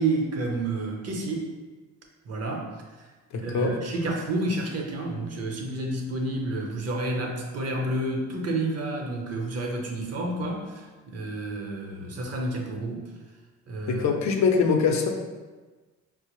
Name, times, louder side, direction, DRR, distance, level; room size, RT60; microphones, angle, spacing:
voice 1, 0.0-1.5 2.3-2.7 3.4-13.1 13.7-14.2, right 2 dB, 55° right, 1 dB, 0.7 m, -30 dB
voice 2, 3.3-3.8 13.9-15.1, left 5 dB, 70° left, 3 dB, 0.6 m, -23 dB
4.3 x 2.0 x 3.0 m, 1.3 s
cardioid pair, 90°, 30 cm